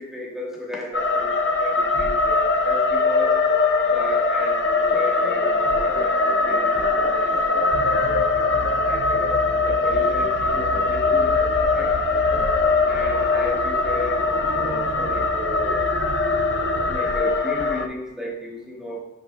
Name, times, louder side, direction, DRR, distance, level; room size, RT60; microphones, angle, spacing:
voice 1, 0.0-3.3 3.9-6.1 6.4-7.3 7.7-8.4 8.8-9.4 9.7-11.9 12.9-15.8 16.9-19.0, left 1 dB, 5° right, -4 dB, 1.3 m, -34 dB
sound 1, 0.9-17.9, left 3 dB, 60° left, 0.5 m, -21 dB
sound 2, 4.6-12.9, left 2 dB, 40° left, 1.8 m, -35 dB
sound 3, 7.7-17.0, right 2 dB, 55° right, 0.4 m, -34 dB
12.0 x 6.0 x 2.2 m, 0.96 s
head